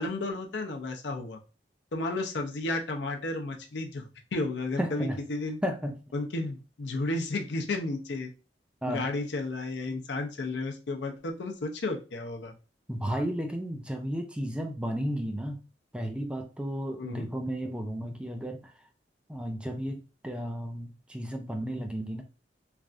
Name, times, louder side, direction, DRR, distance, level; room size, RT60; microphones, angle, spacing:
voice 1, 0.0-1.4 1.9-5.6 6.1-8.3 8.9-12.5 17.0-17.3, left 2 dB, 80° left, 3 dB, 0.6 m, -33 dB
voice 2, 4.8-5.2 5.6-5.9 8.8-9.1 12.9-15.6 15.9-18.6 19.3-22.2, equal, 5° right, 4 dB, 0.4 m, -33 dB
3.3 x 2.4 x 2.5 m, 0.32 s
head